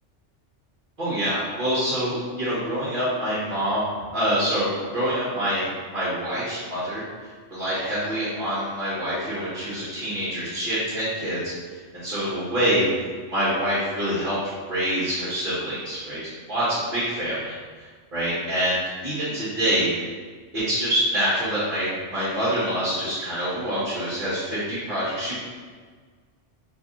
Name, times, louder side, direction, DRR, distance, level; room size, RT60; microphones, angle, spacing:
voice 1, 1.0-3.8 4.1-5.7 5.9-11.5 11.9-12.9 13.3-14.4 14.7-16.2 16.5-19.9 20.5-25.4, equal, 45° right, -12 dB, 1.5 m, -26 dB
3.2 x 2.6 x 3.7 m, 1.5 s
omnidirectional pair, 1.2 m